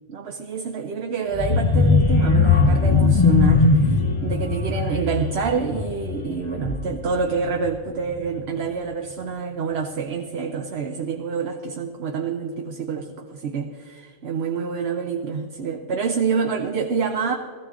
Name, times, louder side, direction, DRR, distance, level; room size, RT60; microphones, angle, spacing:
voice 1, 0.1-17.4, right 5 dB, 60° right, 3 dB, 1.0 m, -27 dB
sound 1, 1.3-7.1 7.5-7.8 8.1-8.2, left 4 dB, 30° left, 0.8 m, -19 dB
17.0 x 14.5 x 3.7 m, 2.1 s
omnidirectional pair, 1.3 m